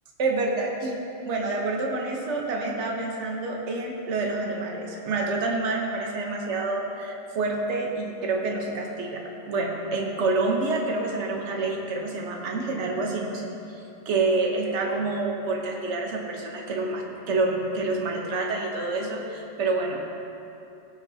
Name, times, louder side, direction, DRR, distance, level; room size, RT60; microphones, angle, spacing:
voice 1, 0.2-13.5 14.1-20.0, right 3 dB, 65° right, 0 dB, 1.3 m, -28 dB
17.0 x 6.1 x 2.8 m, 2.8 s
omnidirectional pair, 1.3 m